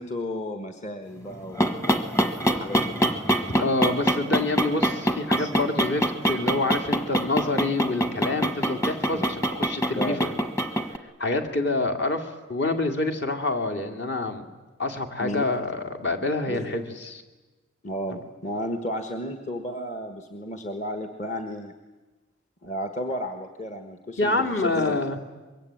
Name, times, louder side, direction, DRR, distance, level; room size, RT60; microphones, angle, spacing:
voice 1, 0.0-2.0 2.3-3.1 5.4-5.5 9.9-10.3 15.2-15.5 16.5-16.7 17.8-21.7 22.6-25.0, left 1 dB, 35° left, 6 dB, 1.4 m, -33 dB
sound 1, 1.3-11.0, right 1 dB, 15° left, 1.3 m, -25 dB
voice 2, 3.5-10.4 11.2-14.5 14.8-17.2 24.2-25.2, left 2 dB, 55° left, 5 dB, 2.4 m, -27 dB
25.0 x 22.5 x 8.9 m, 1.2 s
head